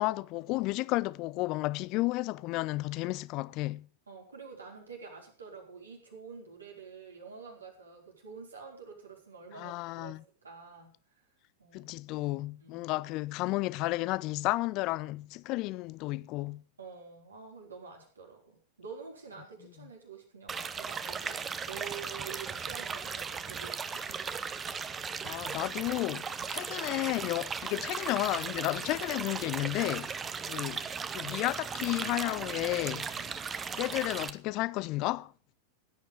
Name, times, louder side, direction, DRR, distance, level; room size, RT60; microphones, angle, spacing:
voice 1, 0.0-3.9 9.6-10.2 11.7-16.6 25.2-30.2 30.5-30.8 31.1-33.1 33.7-35.3, left 20 dB, 40° left, 0.6 m, -32 dB
voice 2, 4.1-10.9 11.6-12.0 12.6-12.9 16.8-24.0 30.2-30.6 33.1-33.5, right 5 dB, 75° right, 5.0 m, -48 dB
sound 1, 20.5-34.3, right 6 dB, 20° right, 1.1 m, -37 dB
sound 2, 20.6-20.7 20.9-27.4, right 8 dB, 45° right, 3.6 m, -61 dB
16.5 x 9.2 x 5.5 m
figure-of-eight pair, 90°, 0 cm